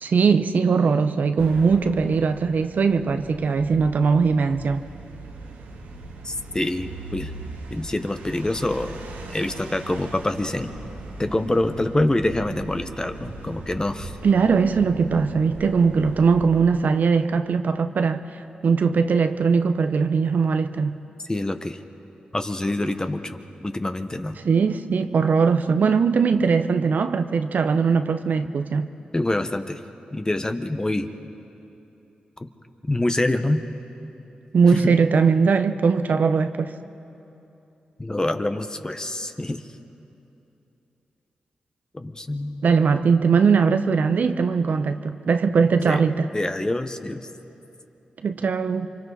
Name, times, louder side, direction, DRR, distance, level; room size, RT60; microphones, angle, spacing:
voice 1, 0.0-4.8 14.2-18.2 18.6-21.0 24.4-28.9 34.5-36.7 42.6-46.3 48.2-48.9, right 5 dB, 65° right, 9 dB, 0.8 m, -20 dB
sound 1, 1.4-16.9, right 2 dB, 90° right, 1.6 m, -39 dB
voice 2, 6.2-7.3 7.7-9.0 9.3-10.7 11.2-14.1 21.3-21.8 22.3-24.4 29.1-29.8 30.1-31.1 32.8-33.6 34.7-34.8 38.0-39.6 41.9-42.7 45.9-46.0 46.3-47.3, left 1 dB, 25° left, 8 dB, 1.3 m, -26 dB
28.5 x 24.0 x 4.2 m, 2.9 s
supercardioid pair, 40°, 3 cm